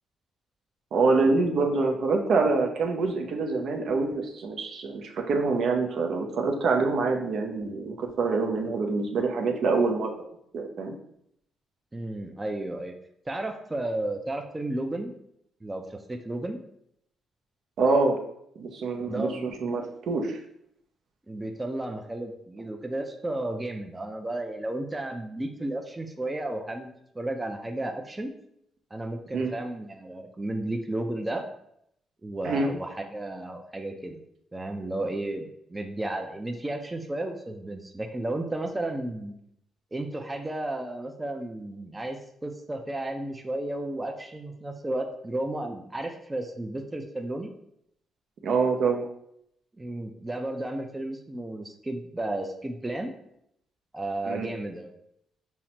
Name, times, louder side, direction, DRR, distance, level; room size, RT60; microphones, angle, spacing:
voice 1, 0.9-10.1 10.5-11.0 17.8-18.2 18.6-20.4 29.3-29.5 32.4-32.7 48.4-49.1 54.3-54.5, right 3 dB, 65° right, 3 dB, 0.6 m, -25 dB
voice 2, 11.9-12.9 13.3-15.1 15.6-16.6 19.0-19.5 21.3-26.9 27.1-28.3 28.9-31.4 32.2-34.2 34.5-39.3 39.9-47.5 49.8-53.1 53.9-54.9, right 1 dB, 15° right, 3 dB, 0.4 m, -33 dB
5.6 x 2.1 x 2.8 m, 0.74 s
cardioid pair, 90°, 0 cm